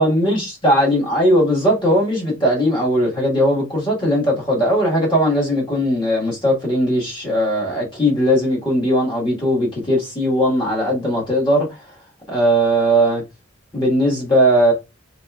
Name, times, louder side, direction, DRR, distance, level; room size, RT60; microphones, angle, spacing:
voice 1, 0.0-11.7 12.3-13.2 13.7-14.7, equal, 25° left, 1.6 m, -18 dB
4.1 x 3.8 x 2.3 m
head